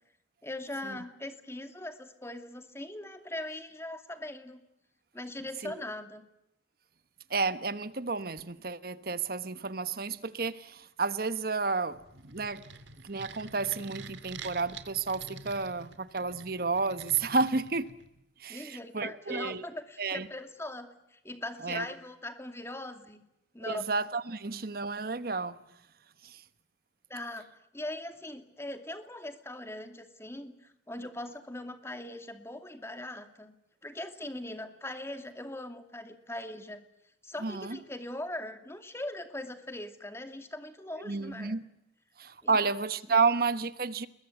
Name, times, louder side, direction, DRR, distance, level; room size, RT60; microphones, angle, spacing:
voice 1, 0.4-4.6 5.1-6.2 18.5-23.2 23.5-23.9 27.1-27.5 27.7-33.5 33.8-36.8 37.2-41.6 42.4-42.7 43.1-43.2, left 1 dB, 15° left, 7 dB, 2.5 m, -40 dB
voice 2, 7.3-12.0 12.2-12.6 13.0-17.9 18.4-19.6 20.0-20.3 21.6-21.9 23.6-25.6 26.2-26.4 37.4-37.8 41.0-41.6 42.2-44.1, right 4 dB, 55° right, 13 dB, 1.2 m, -31 dB
sound 1, 11.9-18.2, right 4 dB, 90° right, 2.4 m, -48 dB
29.5 x 21.5 x 8.1 m, 0.82 s
head